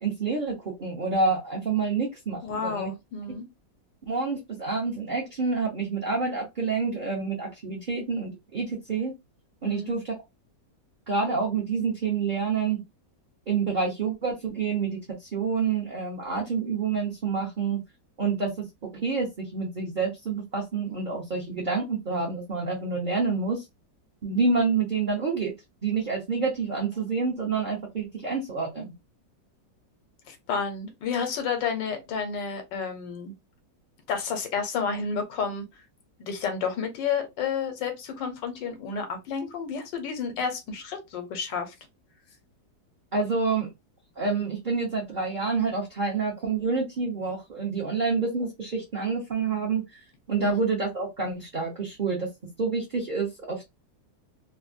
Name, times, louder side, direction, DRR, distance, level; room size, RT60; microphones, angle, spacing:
voice 1, 0.0-2.9 3.3-3.4 4.0-9.1 9.6-10.1 11.1-12.8 13.5-17.8 18.2-18.6 19.0-23.6 24.2-25.5 25.8-28.9 43.1-43.7 44.2-49.8 50.3-52.3 52.6-53.6, right 4 dB, 50° right, 0.5 m, -28 dB
voice 2, 2.4-3.4 9.6-9.9 30.3-33.3 34.1-35.7 36.2-41.7 50.4-50.5, left 6 dB, 80° left, 1.5 m, -31 dB
3.4 x 2.1 x 2.5 m
omnidirectional pair, 1.9 m